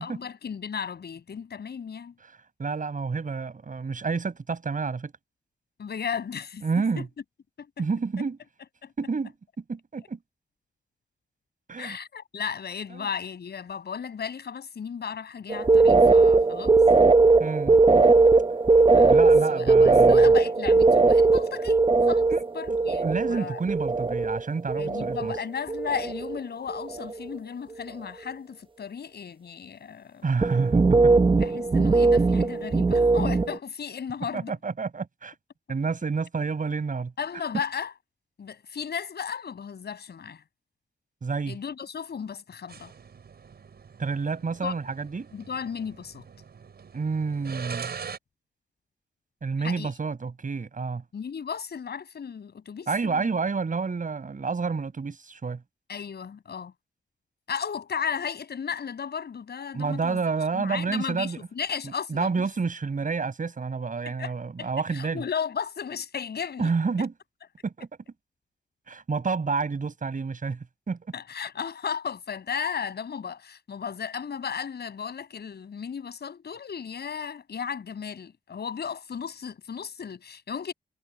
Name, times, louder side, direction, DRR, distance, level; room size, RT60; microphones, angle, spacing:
voice 1, 0.0-2.1 5.8-7.1 7.6-7.7 8.8-8.9 11.8-16.8 18.9-23.6 24.8-30.2 31.4-34.5 37.2-37.9 38.4-40.4 41.5-42.9 44.6-44.7 45.3-46.2 49.6-49.9 51.1-53.3 55.9-56.7 57.5-60.2 60.5-62.3 64.0-64.3 64.6-66.7 71.1-80.7, left 7 dB, 70° left, 6.4 m, -35 dB
voice 2, 2.6-5.1 6.6-7.1 7.8-8.4 9.0-10.2 11.7-12.0 12.9-13.1 17.4-17.8 19.1-20.3 22.3-22.4 23.0-25.4 30.2-31.1 34.3-35.3 35.7-37.1 41.2-41.6 44.0-45.3 46.9-47.9 49.4-51.0 52.9-55.6 59.7-61.4 61.8-65.2 66.6-67.1 67.6-67.9 68.9-71.1, right 4 dB, 50° right, 5.5 m, -29 dB
sound 1, 15.5-24.4 24.7-25.4 25.7-26.4 26.7-27.1 30.4-33.6, right 3 dB, 30° right, 1.0 m, -19 dB
sound 2, 42.7-48.2, right 6 dB, 65° right, 6.0 m, -42 dB
cardioid pair, 55°, 18 cm